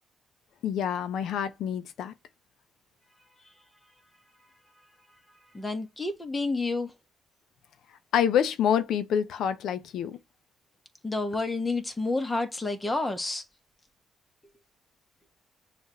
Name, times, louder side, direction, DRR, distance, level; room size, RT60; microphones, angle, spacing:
voice 1, 0.6-2.1 8.1-10.2, left 8 dB, 75° left, 0.6 m, -27 dB
voice 2, 5.5-6.9 11.0-13.4, left 3 dB, 20° left, 1.1 m, -29 dB
6.4 x 2.5 x 3.1 m
cardioid pair, 90°, 0 cm